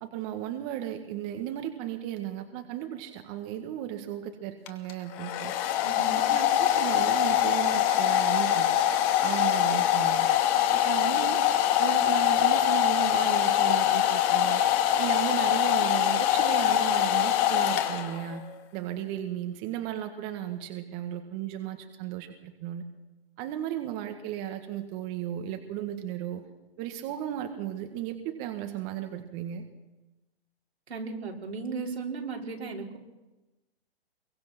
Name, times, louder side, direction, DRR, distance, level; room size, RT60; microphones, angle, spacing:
voice 1, 0.0-5.5 6.3-8.7 9.2-10.3 10.7-11.4 11.8-14.6 15.0-18.4 18.7-22.8 23.4-26.5 26.8-29.7, right 11 dB, 30° right, 6 dB, 1.8 m, -35 dB
Domestic sounds home sounds, 4.7-18.4, left 11 dB, 35° left, 2.4 m, -24 dB
voice 2, 5.8-6.2 30.9-33.0, right 4 dB, 85° right, 0 dB, 5.2 m, -36 dB
23.5 x 21.5 x 6.1 m, 1.1 s
hypercardioid pair, 140°, 31 cm